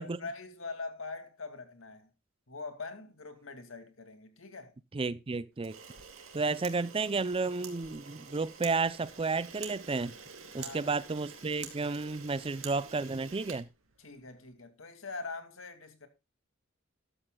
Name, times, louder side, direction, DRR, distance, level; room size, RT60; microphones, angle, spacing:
voice 1, 0.0-2.1 2.5-4.8 10.5-11.0 14.0-16.1, left 3 dB, 75° left, 2.4 m, -43 dB
voice 2, 4.9-5.8 6.3-10.1 10.5-13.7, right 4 dB, 25° right, 0.5 m, -32 dB
Camera, 5.6-14.3, right 6 dB, 80° right, 2.6 m, -48 dB
14.0 x 12.0 x 2.3 m
head